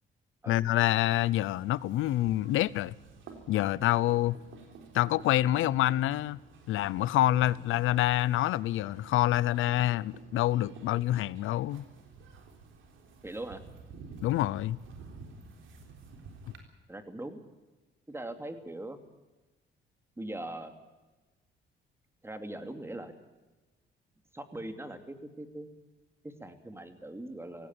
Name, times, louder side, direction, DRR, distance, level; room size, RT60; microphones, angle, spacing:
voice 1, 0.5-2.9 3.5-4.4 4.9-6.4 6.7-11.8 14.2-14.8, left 14 dB, 85° left, 0.7 m, -27 dB
sound 1, 1.1-16.6, right 4 dB, 80° right, 3.7 m, -51 dB
voice 2, 13.2-13.6 16.9-17.4 18.1-19.0 20.2-20.7 22.2-23.1 24.3-25.7 26.2-27.7, right 1 dB, 10° right, 2.7 m, -41 dB
17.5 x 16.5 x 9.6 m
cardioid pair, 90°, 20 cm